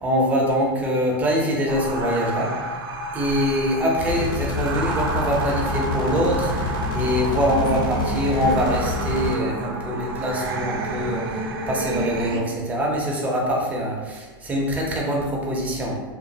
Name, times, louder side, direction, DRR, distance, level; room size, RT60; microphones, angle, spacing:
voice 1, 0.0-2.5 3.1-16.0, equal, 10° right, -2 dB, 0.5 m, -24 dB
sound 1, 1.7-12.4, right 2 dB, 80° right, 0.4 m, -29 dB
sound 2, 4.1-9.4, left 3 dB, 60° left, 0.5 m, -27 dB
2.9 x 2.2 x 2.6 m, 1.3 s
supercardioid pair, 155°, 12 cm